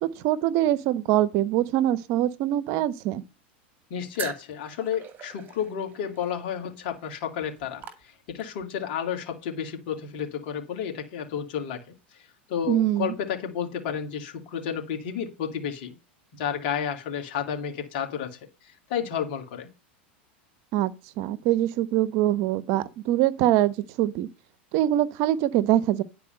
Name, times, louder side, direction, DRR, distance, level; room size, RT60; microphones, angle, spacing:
voice 1, 0.0-3.2 12.7-13.1 20.7-24.3 24.7-26.0, right 13 dB, 55° right, 1.0 m, -24 dB
voice 2, 3.9-7.8 8.3-11.8 12.5-15.9 16.3-18.4 18.9-19.7, left 8 dB, 65° left, 2.6 m, -31 dB
sound 1, 4.1-8.6, right 8 dB, 30° right, 2.2 m, -42 dB
10.5 x 4.8 x 6.5 m
hypercardioid pair, 100°, 6 cm